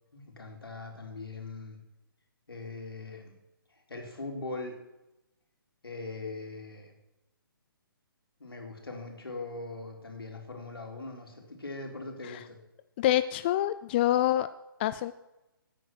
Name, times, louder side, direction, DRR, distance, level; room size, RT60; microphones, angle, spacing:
voice 1, 0.1-1.8 2.5-3.3 3.9-4.8 5.8-6.9 8.4-12.6, left 3 dB, 80° left, 2 dB, 3.7 m, -41 dB
voice 2, 13.0-14.5 14.8-15.1, left 13 dB, 25° left, 13 dB, 0.4 m, -26 dB
17.0 x 9.0 x 6.1 m, 0.95 s
figure-of-eight pair, 135°, 12 cm